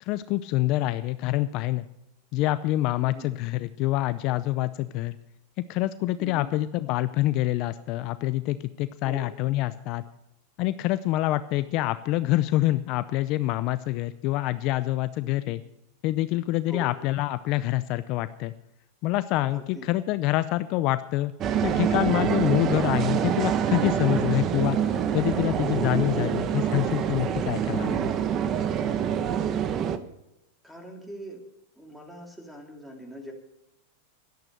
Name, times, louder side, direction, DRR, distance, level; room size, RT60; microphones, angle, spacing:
voice 1, 0.0-1.9 2.3-5.2 5.7-10.0 10.6-15.6 16.0-18.5 19.0-21.3 21.6-28.1, left 16 dB, 45° left, 13 dB, 0.6 m, -26 dB
voice 2, 6.2-6.5 9.0-9.2 15.2-15.4 16.7-16.9 19.5-19.9 30.6-31.4 31.8-33.3, equal, ahead, 2 dB, 2.8 m, -42 dB
sound 1, 21.4-30.0, right 8 dB, 35° right, 1.0 m, -26 dB
12.0 x 10.5 x 6.7 m, 0.88 s
supercardioid pair, 135°, 0 cm